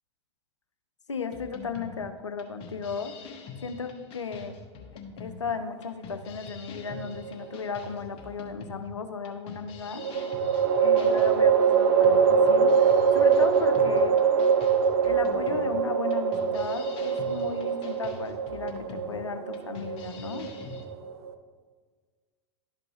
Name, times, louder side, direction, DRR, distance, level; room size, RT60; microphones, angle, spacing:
voice 1, 1.1-3.1 3.6-4.5 5.2-10.0 10.8-14.1 15.0-20.5, left 5 dB, 85° left, 8 dB, 0.6 m, -35 dB
sound 1, 1.3-20.8, left 4 dB, 40° left, 1.2 m, -45 dB
sound 2, 6.9-7.7 10.0-21.3, right 6 dB, 65° right, 0.6 m, -23 dB
12.0 x 5.2 x 2.8 m, 1.5 s
figure-of-eight pair, 90°, 15 cm